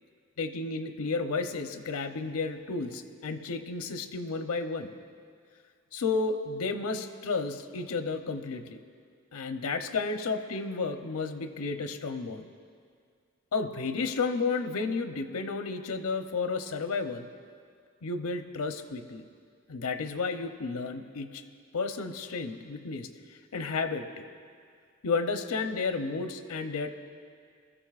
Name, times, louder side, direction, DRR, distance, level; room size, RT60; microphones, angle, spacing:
voice 1, 0.4-4.9 5.9-8.8 9.3-12.5 13.5-17.3 18.0-19.3 19.7-21.4 21.7-23.1 23.5-24.3 25.0-26.9, left 4 dB, 85° left, 7 dB, 0.7 m, -32 dB
21.0 x 13.5 x 2.4 m, 2.2 s
head